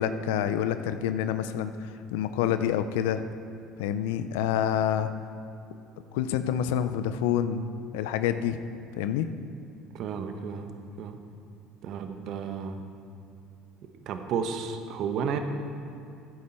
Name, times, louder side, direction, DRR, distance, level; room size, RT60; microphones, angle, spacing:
voice 1, 0.0-1.7 2.1-3.2 3.8-5.1 6.1-7.6 7.9-8.6 9.0-9.3, left 9 dB, 80° left, 11 dB, 0.5 m, -27 dB
voice 2, 9.9-10.7 11.0-11.2 11.8-12.8 14.1-15.4, right 6 dB, 60° right, 7 dB, 1.0 m, -32 dB
13.5 x 9.5 x 4.4 m, 2.6 s
hypercardioid pair, 75°, 0 cm